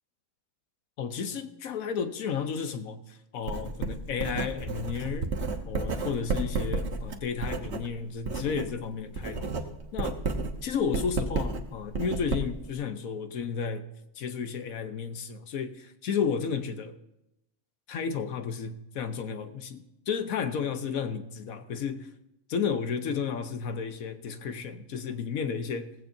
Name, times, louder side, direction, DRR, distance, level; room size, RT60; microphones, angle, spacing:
voice 1, 1.0-5.4 5.7-9.6 9.9-10.2 10.6-13.9 14.1-17.0 17.9-22.1 22.5-25.9, left 6 dB, 80° left, 1.3 m, -32 dB
Writing, 3.5-8.7 9.0-12.7, right 3 dB, 55° right, 1.3 m, -32 dB
17.5 x 15.5 x 2.7 m
omnidirectional pair, 1.5 m